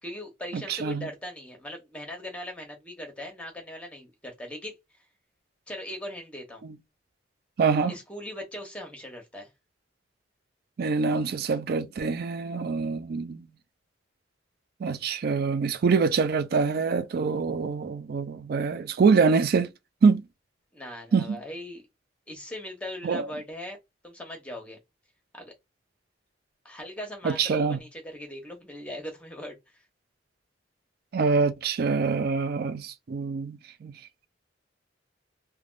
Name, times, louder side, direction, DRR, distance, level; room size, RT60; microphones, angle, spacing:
voice 1, 0.0-4.7 5.7-6.6 7.9-9.5 20.7-21.8 22.3-23.8 24.0-24.8 25.3-25.5 26.6-29.6, left 1 dB, 5° left, 0.9 m, -39 dB
voice 2, 0.5-1.1 6.6-6.7 7.6-7.9 10.8-13.4 14.8-19.7 20.0-20.2 21.1-21.4 23.0-23.3 27.2-27.8 31.1-33.9, right 5 dB, 55° right, 0.4 m, -25 dB
3.3 x 2.2 x 2.5 m
head